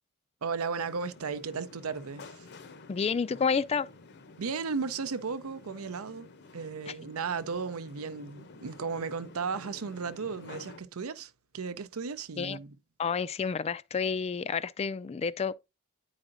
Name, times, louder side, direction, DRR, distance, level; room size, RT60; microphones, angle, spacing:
voice 1, 0.4-2.5 4.4-6.3 6.5-12.7, right 5 dB, 80° right, 0.6 m, -35 dB
sound 1, 0.8-10.8, left 3 dB, 55° left, 0.7 m, -51 dB
voice 2, 2.9-3.9 6.9-7.0 12.4-12.6 13.0-15.5, left 5 dB, 30° left, 0.3 m, -30 dB
9.7 x 4.9 x 2.6 m
head